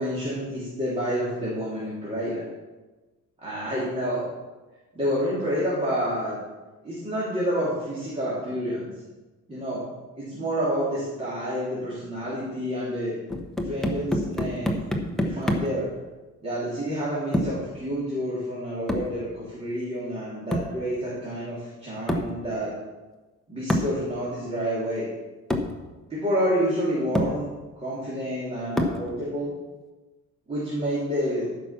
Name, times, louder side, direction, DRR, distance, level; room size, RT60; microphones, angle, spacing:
voice 1, 0.0-2.4 3.4-4.2 4.9-6.4 6.8-8.9 9.5-9.8 10.1-13.2 13.6-14.8 15.1-15.9 16.4-22.7 23.5-25.1 26.1-27.5 27.8-29.5 30.5-31.5, equal, 20° right, -8 dB, 3.1 m, -28 dB
sound 1, 13.3-15.8 17.3-17.7 18.9-19.2 20.5-20.8 22.1-22.4 23.7-24.0 25.0-25.1 25.5-25.8 26.6-26.7 27.1-27.4 28.8-29.1, left 1 dB, ahead, 0.9 m, -27 dB
14.0 x 6.0 x 5.8 m, 1.2 s
cardioid pair, 165°, 32 cm